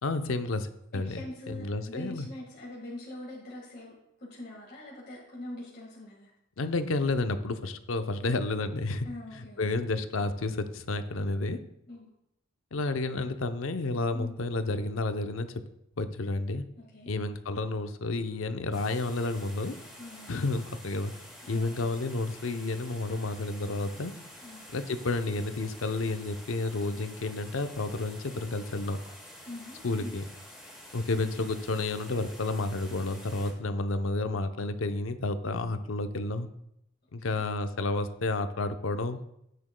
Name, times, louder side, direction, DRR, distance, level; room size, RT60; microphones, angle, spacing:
voice 1, 0.0-2.3 6.6-9.1 9.3-11.6 12.7-15.6 16.0-16.6 17.1-19.8 20.3-21.1 21.5-24.1 24.7-29.0 29.8-30.2 30.9-36.5 37.1-39.2, left 2 dB, 75° left, 9 dB, 0.6 m, -31 dB
voice 2, 0.9-6.3 9.0-9.6 11.9-12.1 14.1-14.3 16.8-17.2 20.0-20.3 21.4-21.9 24.4-24.7 29.4-30.1 37.2-37.4, left 1 dB, 50° left, -4 dB, 1.7 m, -43 dB
sound 1, 18.7-33.5, left 1 dB, ahead, 3.9 m, -49 dB
12.5 x 9.3 x 2.2 m, 0.79 s
head